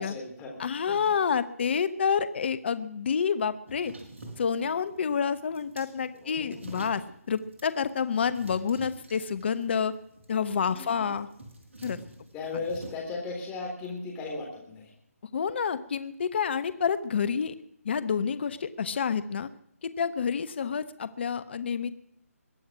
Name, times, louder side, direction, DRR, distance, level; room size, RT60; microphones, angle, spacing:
voice 1, 0.0-0.5 6.1-6.5 10.7-11.1 12.3-14.9, left 3 dB, 15° left, -1 dB, 3.6 m, -36 dB
voice 2, 0.6-3.9 4.4-9.9 10.3-11.3 11.8-12.0 15.3-17.5 17.8-19.5 19.8-21.9, left 6 dB, 45° left, 14 dB, 1.1 m, -28 dB
sound 1, 3.7-12.9, right 2 dB, 50° right, 4.8 m, -47 dB
22.5 x 8.6 x 6.1 m, 0.75 s
figure-of-eight pair, 150°, 8 cm